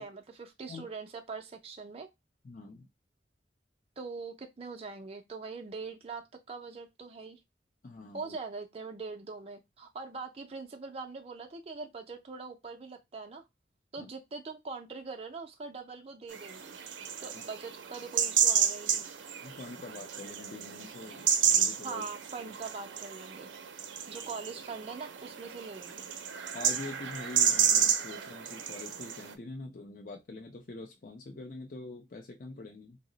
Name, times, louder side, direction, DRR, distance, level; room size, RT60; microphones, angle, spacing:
voice 1, 0.0-2.1 4.0-7.4 8.1-13.4 13.9-16.8 17.2-19.0 21.8-23.5 24.1-26.1, right 4 dB, 35° right, 0.4 m, -42 dB
voice 2, 2.4-2.9 7.8-8.3 14.0-14.1 19.4-22.0 22.5-22.6 26.5-33.0, left 2 dB, 45° left, 0.5 m, -44 dB
sound 1, 16.3-29.3, right 8 dB, 85° right, 0.5 m, -31 dB
2.8 x 2.0 x 3.8 m
head